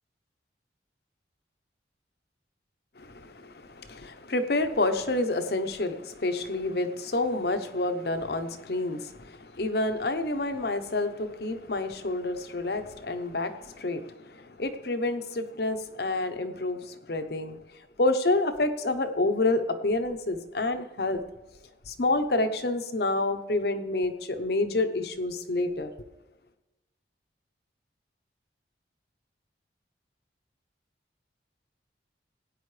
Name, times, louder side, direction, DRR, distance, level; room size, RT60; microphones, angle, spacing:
voice 1, 3.0-17.6 18.0-21.2 21.9-25.9, left 2 dB, 60° left, 0.8 m, -28 dB
17.0 x 9.3 x 3.3 m
head